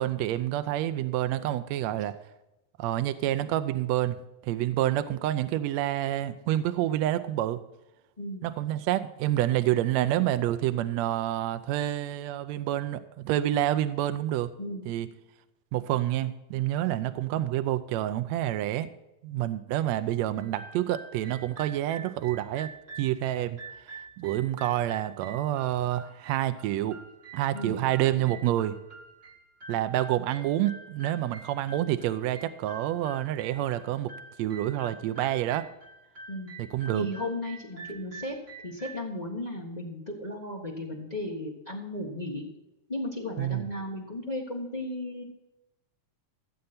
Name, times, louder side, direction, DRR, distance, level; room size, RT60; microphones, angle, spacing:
voice 1, 0.0-2.2 2.8-7.6 8.4-14.5 14.9-15.1 15.7-18.9 19.2-22.7 23.0-23.6 24.2-27.0 27.3-28.8 29.7-34.1 34.4-35.7 36.6-37.1 43.4-43.7, right 13 dB, 80° right, 11 dB, 1.6 m, -28 dB
voice 2, 8.2-8.5 14.6-14.9 27.5-27.9 36.3-36.5 36.9-38.3 38.6-42.4 42.9-45.2, left 1 dB, 75° left, -2 dB, 0.4 m, -35 dB
sound 1, 20.4-39.1, right 3 dB, 45° right, 0.9 m, -47 dB
15.0 x 7.8 x 4.3 m, 0.96 s
omnidirectional pair, 3.7 m